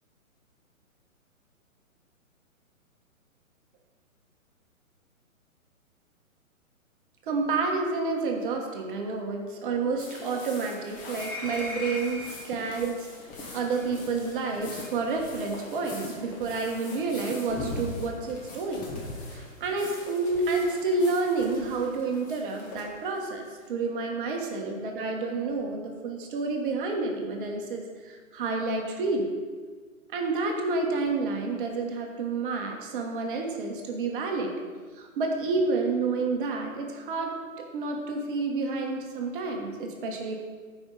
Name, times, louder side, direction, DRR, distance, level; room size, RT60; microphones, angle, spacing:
voice 1, 7.2-12.2 12.5-13.1 13.5-18.9 19.3-29.3 30.1-34.7 34.9-40.4, right 3 dB, 40° right, 2 dB, 1.3 m, -29 dB
sound 1, 10.0-23.6, left 2 dB, 20° left, 1.3 m, -42 dB
sound 2, 11.1-12.4 13.7-13.9 14.8-15.0, left 1 dB, 5° left, 1.5 m, -37 dB
14.0 x 5.3 x 4.0 m, 1.6 s
hypercardioid pair, 140°, 42 cm